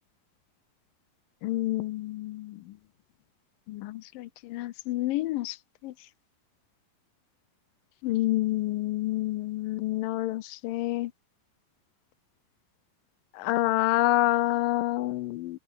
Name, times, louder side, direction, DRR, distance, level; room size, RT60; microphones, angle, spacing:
voice 1, 1.4-2.5 3.7-5.6 5.8-5.9 8.0-11.1 13.4-15.6, left 17 dB, 90° left, 2.5 m, -28 dB
open air
omnidirectional pair, 3.9 m